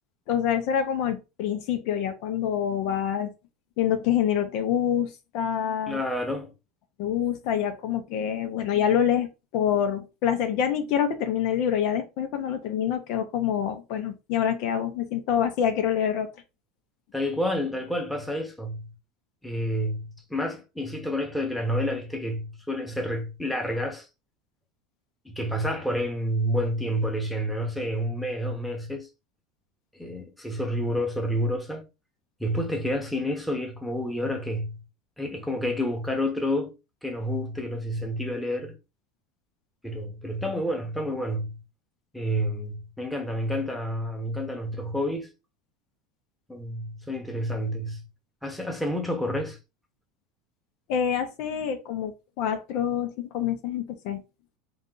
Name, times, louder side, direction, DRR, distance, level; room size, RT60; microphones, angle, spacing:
voice 1, 0.3-3.3 3.8-6.0 7.0-16.3 50.9-54.2, left 9 dB, 60° left, 0.9 m, -26 dB
voice 2, 5.9-6.5 17.1-18.9 19.4-24.1 25.2-29.1 30.0-31.8 32.4-34.8 35.2-36.7 37.0-38.7 39.8-41.6 42.1-45.3 46.5-48.0 48.4-49.6, equal, ahead, 1.1 m, -29 dB
3.9 x 2.6 x 3.8 m
supercardioid pair, 125°, 0 cm